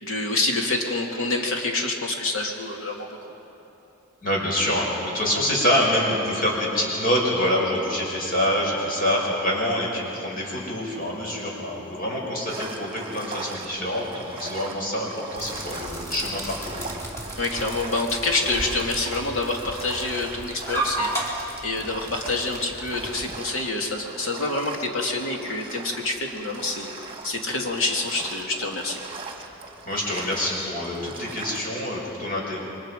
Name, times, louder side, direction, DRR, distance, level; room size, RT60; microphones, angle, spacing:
voice 1, 0.0-3.1 17.4-29.0, left 2 dB, 70° left, 1 dB, 2.7 m, -27 dB
voice 2, 4.2-16.9 29.8-32.6, left 1 dB, 45° left, -3 dB, 5.9 m, -26 dB
sound 1, 12.5-31.7, right 3 dB, 25° right, 1.7 m, -40 dB
sound 2, 15.4-23.4, right 1 dB, 15° left, 3.1 m, -34 dB
28.5 x 23.5 x 5.1 m, 3.0 s
head